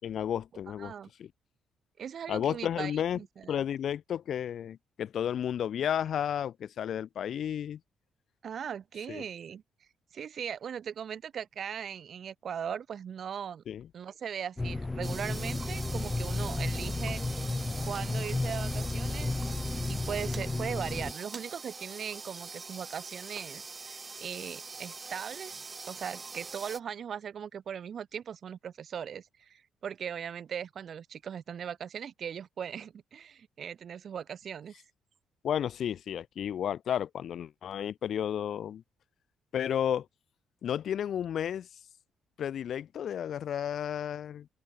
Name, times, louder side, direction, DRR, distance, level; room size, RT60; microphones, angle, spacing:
voice 1, 0.0-0.9 1.2-1.3 2.3-3.2 3.5-7.8 9.1-9.2 13.7-13.9 35.4-38.8 39.5-40.1 40.6-41.7 42.4-44.5, left 9 dB, 65° left, 2.9 m, -32 dB
voice 2, 0.8-1.1 2.0-3.7 8.4-9.6 10.1-13.6 13.9-17.2 17.8-19.4 19.9-34.8, right 8 dB, 55° right, 1.9 m, -39 dB
sound 1, 14.6-21.1, left 2 dB, 20° left, 0.6 m, -33 dB
sound 2, 15.0-26.8, right 4 dB, 30° right, 3.1 m, -43 dB
open air
cardioid pair, 90°, 0 cm